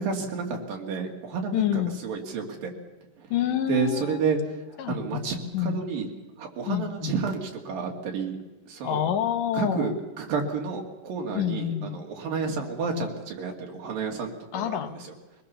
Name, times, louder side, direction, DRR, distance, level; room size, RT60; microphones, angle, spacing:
voice 1, 0.0-1.7 2.0-2.7 3.7-4.4 4.9-6.1 6.4-8.4 8.7-9.1 9.5-14.8, right 5 dB, 85° right, 1 dB, 4.1 m, -30 dB
voice 2, 1.5-2.0 3.3-4.3 4.8-5.2 5.5-5.8 6.7-7.1 8.8-9.9 11.3-12.0 14.5-15.0, left 11 dB, 75° left, 8 dB, 2.6 m, -28 dB
22.5 x 19.5 x 6.9 m, 1.1 s
omnidirectional pair, 3.9 m